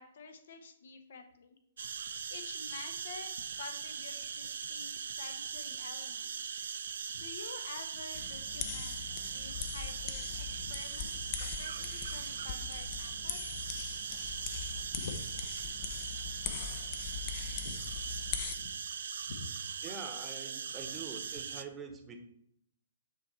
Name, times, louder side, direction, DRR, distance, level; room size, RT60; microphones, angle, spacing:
voice 1, 0.0-1.6 2.3-6.6 7.1-13.6 15.0-15.2 15.8-15.9 16.4-16.8 17.6-18.0 18.6-18.7 19.3-19.8, left 4 dB, 55° left, 7 dB, 0.9 m, -48 dB
sound 1, 1.8-21.6, right 7 dB, 60° right, 0.4 m, -40 dB
sound 2, 8.1-18.5, left 8 dB, 35° left, 0.6 m, -41 dB
voice 2, 19.8-22.2, right 5 dB, 15° right, 5 dB, 1.0 m, -45 dB
8.7 x 3.1 x 4.1 m, 0.72 s
figure-of-eight pair, 120°, 0 cm